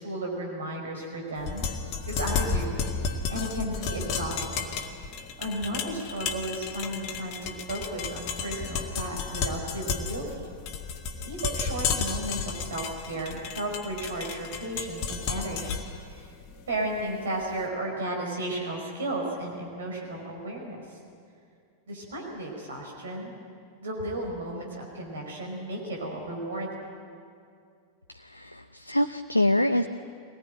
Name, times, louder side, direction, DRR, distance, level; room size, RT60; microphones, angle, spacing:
voice 1, 0.0-1.7 2.1-4.7 5.4-10.5 11.2-15.8 16.1-16.3 16.7-21.0 21.9-23.3 23.8-26.7, right 1 dB, 65° right, 0 dB, 5.0 m, -34 dB
sound 1, 1.4-17.4, left 5 dB, 40° left, 1.9 m, -33 dB
voice 2, 28.1-29.9, left 1 dB, 85° left, 7 dB, 0.6 m, -25 dB
23.0 x 19.0 x 9.0 m, 2.3 s
figure-of-eight pair, 90°, 0 cm